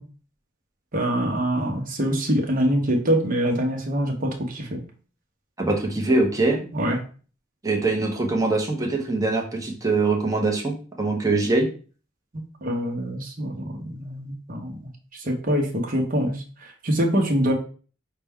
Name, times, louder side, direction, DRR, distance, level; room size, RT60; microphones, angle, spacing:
voice 1, 0.9-4.8 6.7-7.0 12.3-14.9 15.2-17.5, equal, 45° right, 1 dB, 1.0 m, -25 dB
voice 2, 5.6-6.6 7.6-11.7, right 2 dB, 15° right, 1 dB, 0.8 m, -23 dB
5.8 x 2.2 x 3.5 m, 0.39 s
head